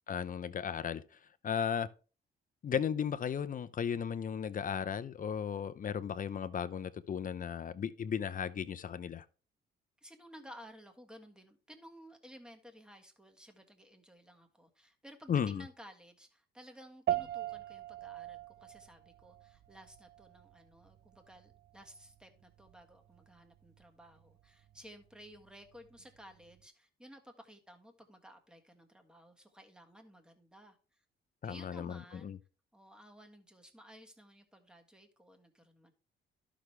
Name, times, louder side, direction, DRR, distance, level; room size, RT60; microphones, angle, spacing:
voice 1, 0.1-1.0 1.4-1.9 2.6-9.2 15.3-15.6 31.4-32.4, left 7 dB, 45° left, 0.7 m, -35 dB
voice 2, 10.0-31.0 31.4-32.3 32.7-35.9, equal, 5° right, 1.6 m, -55 dB
sound 1, 17.1-26.6, right 12 dB, 55° right, 0.5 m, -42 dB
11.5 x 6.2 x 3.3 m
cardioid pair, 90°, 20 cm